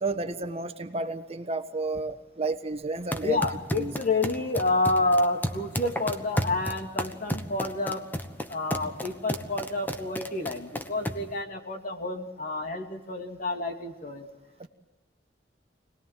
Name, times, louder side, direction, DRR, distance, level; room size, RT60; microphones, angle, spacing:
voice 1, 0.0-3.4 3.7-3.9 14.6-14.7, right 3 dB, 35° right, 8 dB, 1.3 m, -31 dB
sound 1, 3.0-11.4, equal, 10° left, 1.2 m, -33 dB
voice 2, 3.2-8.0 8.5-14.3, left 2 dB, 50° left, 4 dB, 2.7 m, -29 dB
26.0 x 19.5 x 7.5 m, 1.1 s
head